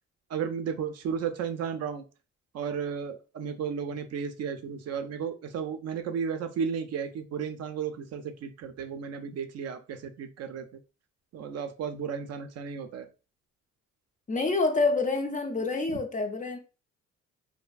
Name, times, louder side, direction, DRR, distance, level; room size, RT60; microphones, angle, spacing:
voice 1, 0.3-2.0 2.5-10.7 11.3-13.1, right 7 dB, 55° right, 0.4 m, -34 dB
voice 2, 14.3-16.6, left 3 dB, 25° left, 0.4 m, -27 dB
2.6 x 2.4 x 2.2 m
cardioid pair, 90°, 30 cm